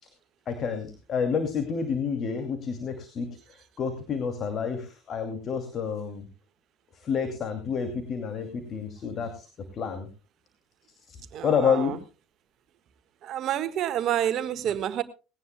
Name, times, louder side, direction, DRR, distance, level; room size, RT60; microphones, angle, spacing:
voice 1, 0.5-6.3 6.9-9.5 9.7-10.1 11.1-11.2 11.4-12.0, left 6 dB, 45° left, 6 dB, 2.5 m, -29 dB
voice 2, 11.3-12.0 13.2-15.0, right 11 dB, 55° right, 12 dB, 1.5 m, -28 dB
19.0 x 17.5 x 2.2 m, 0.32 s
hypercardioid pair, 70°, 0 cm